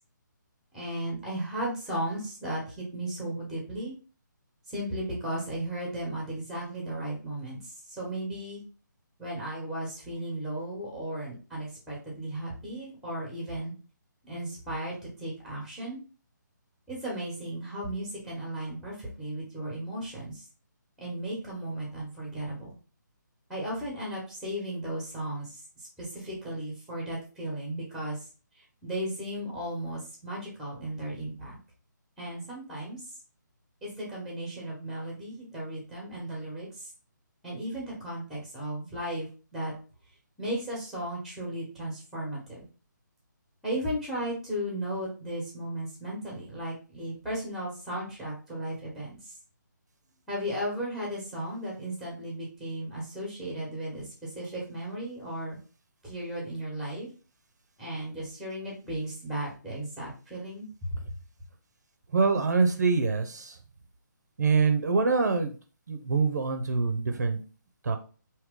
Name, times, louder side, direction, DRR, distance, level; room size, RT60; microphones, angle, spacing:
voice 1, 0.7-3.9 4.7-8.6 9.2-13.7 14.3-16.0 16.9-20.5 21.0-22.8 23.5-25.6 26.0-28.2 28.8-31.6 32.2-33.0 33.8-36.9 37.4-39.7 40.4-42.6 43.6-49.3 50.3-55.6 56.0-57.1 57.8-61.0, right 1 dB, ahead, -3 dB, 1.2 m, -35 dB
voice 2, 62.1-63.5 64.4-65.5 65.9-67.4 67.8-68.0, right 4 dB, 60° right, 6 dB, 0.8 m, -25 dB
4.7 x 3.0 x 3.7 m, 0.36 s
hypercardioid pair, 170°, 11 cm